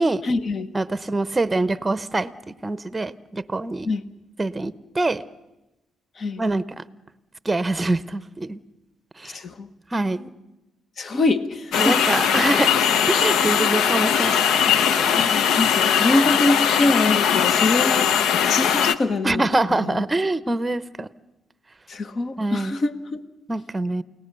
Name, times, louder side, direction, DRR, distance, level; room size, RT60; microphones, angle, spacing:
voice 1, 0.2-0.7 3.8-4.0 6.2-6.4 9.2-9.7 11.0-12.0 15.1-20.0 21.9-23.2, left 2 dB, 45° left, 11 dB, 1.3 m, -24 dB
voice 2, 0.7-2.3 2.6-3.9 4.4-5.2 6.4-6.8 7.4-8.6 9.2-9.4 9.9-10.3 11.8-12.7 13.1-15.1 19.2-21.1 22.4-22.8 23.5-24.0, right 2 dB, 20° right, 16 dB, 0.8 m, -24 dB
sound 1, 11.7-18.9, left 8 dB, 80° left, 0.8 m, -20 dB
29.0 x 18.5 x 6.9 m, 0.99 s
cardioid pair, 90°, 0 cm